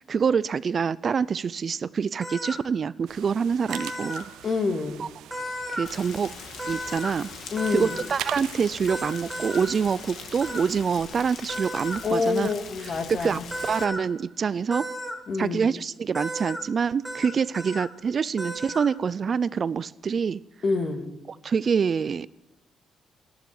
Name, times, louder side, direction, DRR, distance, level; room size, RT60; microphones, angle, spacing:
voice 1, 0.0-4.3 5.0-5.1 5.7-6.4 6.7-7.3 7.7-12.5 12.8-13.4 13.7-14.9 15.4-20.4 21.4-22.3, right 6 dB, 45° right, 19 dB, 0.4 m, -26 dB
sound 1, 2.2-2.6 3.7-4.2 5.3-5.9 6.6-7.1 7.6-8.0 8.9-9.7 10.4-10.6 11.5-12.0 13.5-14.0 14.7-15.1 16.1-16.6 17.0-17.3 17.5-17.9 18.4-18.9, equal, 10° right, 2.9 m, -34 dB
sound 2, 3.1-10.8, right 12 dB, 85° right, 0.6 m, -42 dB
voice 2, 4.4-5.0 7.5-7.9 12.0-13.4 15.3-15.7 20.6-21.1, left 4 dB, 45° left, 6 dB, 2.2 m, -27 dB
Rain, 5.9-13.9, left 6 dB, 65° left, 1.7 m, -42 dB
13.0 x 11.5 x 9.5 m, 1.1 s
cardioid pair, 90°, 0 cm